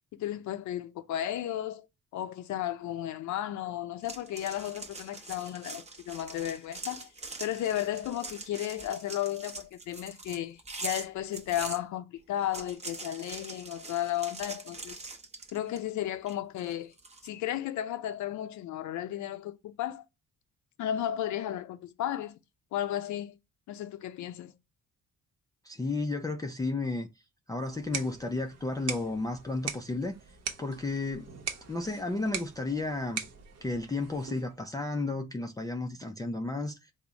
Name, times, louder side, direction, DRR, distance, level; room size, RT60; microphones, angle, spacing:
voice 1, 0.2-1.9 2.1-7.1 7.4-15.0 15.5-16.9 17.2-20.0 20.8-22.4 22.7-23.4 23.7-24.5, left 12 dB, 70° left, 0.5 m, -34 dB
sound 1, 4.0-11.8 12.4-15.9 16.3-17.3, right 3 dB, 20° right, 0.7 m, -43 dB
voice 2, 25.6-27.1 27.5-30.2 30.6-31.3 31.7-33.2 33.6-36.9, left 2 dB, 15° left, 0.4 m, -33 dB
sound 2, 27.6-34.6, right 7 dB, 55° right, 0.8 m, -41 dB
3.4 x 2.0 x 3.9 m
cardioid pair, 90°, 30 cm